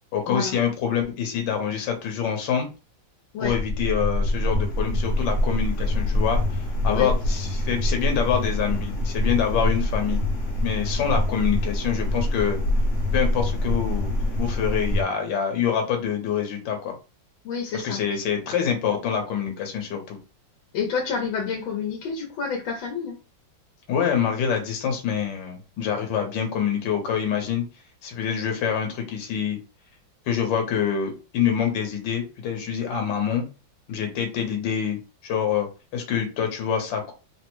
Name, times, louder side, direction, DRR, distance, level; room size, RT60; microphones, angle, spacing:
voice 1, 0.1-2.7 3.4-10.3 10.6-12.6 13.1-16.9 17.7-20.2 23.9-27.7 28.0-29.6 30.3-33.5 33.9-35.0 35.2-35.7 35.9-37.1, left 8 dB, 70° left, 3 dB, 1.5 m, -26 dB
sound 1, 3.4-15.0, left 1 dB, 50° left, 1.0 m, -25 dB
voice 2, 17.4-18.0 20.7-23.1, left 6 dB, 90° left, 0 dB, 1.5 m, -29 dB
3.7 x 2.1 x 3.0 m, 0.31 s
omnidirectional pair, 2.1 m